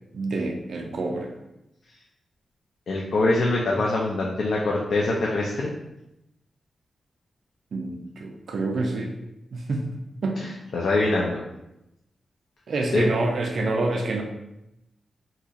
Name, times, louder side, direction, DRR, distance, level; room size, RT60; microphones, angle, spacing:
voice 1, 0.1-1.3 7.7-9.1 9.5-9.8 10.2-10.5 12.7-14.2, right 2 dB, 65° right, 2 dB, 0.4 m, -27 dB
voice 2, 2.9-5.7 10.7-11.4 12.9-13.1, left 2 dB, 70° left, -2 dB, 0.4 m, -23 dB
3.9 x 2.8 x 2.4 m, 0.88 s
wide cardioid pair, 140°, 0 cm